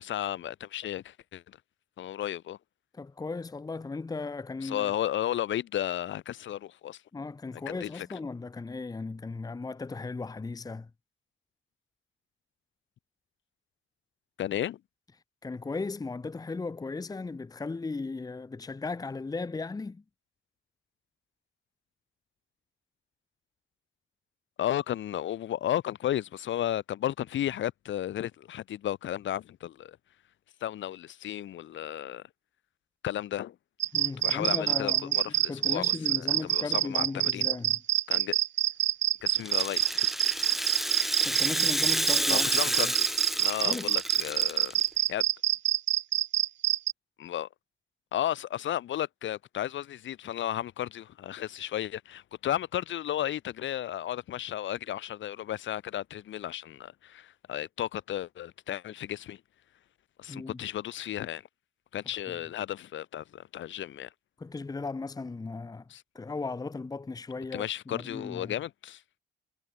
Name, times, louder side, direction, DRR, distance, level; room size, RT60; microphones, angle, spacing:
voice 1, 0.0-1.6 2.0-2.6 4.6-7.0 7.7-8.1 14.4-14.8 24.6-30.0 30.6-32.2 33.0-33.6 34.2-35.9 36.1-37.5 38.1-38.4 39.2-40.1 42.3-43.1 43.4-44.7 45.1-45.2 47.2-47.5 48.1-59.4 60.2-61.4 61.9-64.1 65.9-66.0 67.5-69.0, left 12 dB, 70° left, 2.9 m, -33 dB
voice 2, 2.9-4.9 7.1-10.9 15.4-20.0 33.9-35.2 35.5-37.8 41.2-42.5 42.8-42.9 43.6-43.9 60.3-60.6 64.4-65.9 66.1-68.6, left 3 dB, 20° left, 0.9 m, -36 dB
sound 1, 33.8-46.9, right 12 dB, 65° right, 1.1 m, -26 dB
Rattle (instrument), 39.4-44.8, equal, ahead, 1.7 m, -31 dB
cardioid pair, 90°, 20 cm